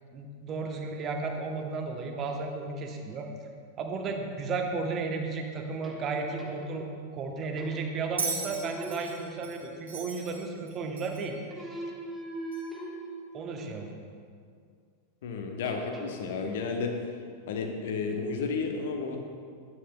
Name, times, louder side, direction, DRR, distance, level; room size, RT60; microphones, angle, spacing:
voice 1, 0.1-3.3 3.8-6.9 7.1-11.3 13.3-13.9, right 4 dB, 30° right, 3 dB, 1.0 m, -34 dB
sound 1, 5.8-7.1 7.6-8.1 8.4-9.8 11.5-14.0 15.6-16.3, right 2 dB, 5° right, 1.4 m, -42 dB
Bell, 8.2-11.4 12.5-12.6, right 4 dB, 65° right, 2.0 m, -37 dB
voice 2, 15.2-17.0 17.5-19.2, left 4 dB, 55° left, 3 dB, 1.0 m, -32 dB
12.5 x 9.4 x 2.3 m, 2.2 s
figure-of-eight pair, 90°, 0 cm